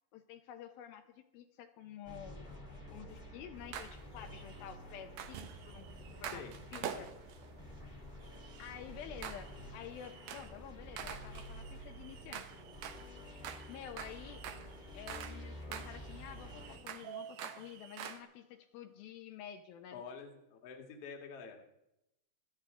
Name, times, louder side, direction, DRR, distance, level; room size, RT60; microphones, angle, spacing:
voice 1, 0.1-2.5 2.9-5.9 6.2-7.1 8.6-12.5 13.7-14.5 14.9-20.0, left 10 dB, 80° left, 6 dB, 2.6 m, -50 dB
sound 1, 2.0-16.8, equal, 15° left, 1.8 m, -50 dB
sound 2, 3.7-4.6 5.2-7.5 8.2-8.7 9.2-9.7 10.0-10.6 11.0-15.4 15.7-18.2, right 8 dB, 70° right, 1.7 m, -47 dB
sound 3, 4.9-17.7, right 11 dB, 90° right, 1.8 m, -58 dB
voice 2, 6.3-7.0 19.9-21.8, left 5 dB, 50° left, 2 dB, 2.2 m, -48 dB
25.5 x 9.1 x 3.7 m, 0.86 s
omnidirectional pair, 4.3 m